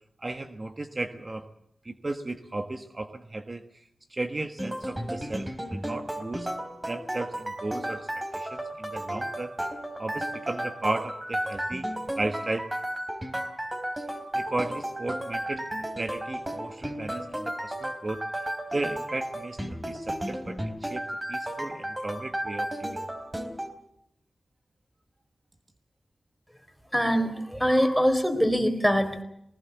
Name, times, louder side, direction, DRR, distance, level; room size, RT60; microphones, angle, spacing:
voice 1, 0.2-1.5 1.8-6.5 6.9-9.5 10.0-11.9 12.2-12.7 14.1-15.7 16.0-23.0, right 2 dB, 35° right, 7 dB, 1.4 m, -35 dB
sound 1, 4.6-23.7, right 1 dB, 20° right, 3.8 m, -34 dB
voice 2, 26.9-29.2, equal, ahead, 8 dB, 4.2 m, -23 dB
20.0 x 19.5 x 8.2 m, 0.78 s
cardioid pair, 55°, 0 cm